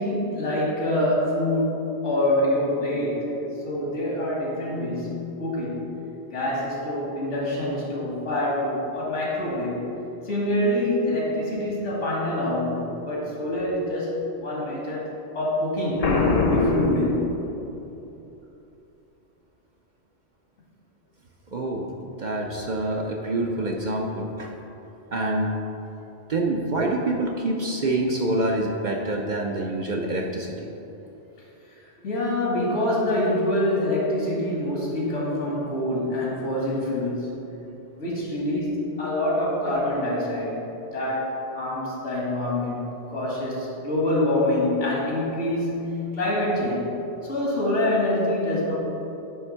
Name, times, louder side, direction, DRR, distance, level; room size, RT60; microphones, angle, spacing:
voice 1, 0.0-3.3 3.6-5.9 6.3-9.9 10.2-15.0 15.3-16.1 16.5-17.2 31.7-31.8 32.0-37.4 38.0-40.6 40.9-46.9 47.2-48.7, left 1 dB, 80° left, -5 dB, 2.3 m, -26 dB
Boom, 16.0-17.9, left 3 dB, 40° left, 0.6 m, -22 dB
voice 2, 21.5-24.5 25.1-25.5 26.3-30.7 39.6-39.8, right 2 dB, 50° right, 0 dB, 0.6 m, -26 dB
9.6 x 3.4 x 5.5 m, 2.9 s
omnidirectional pair, 1.2 m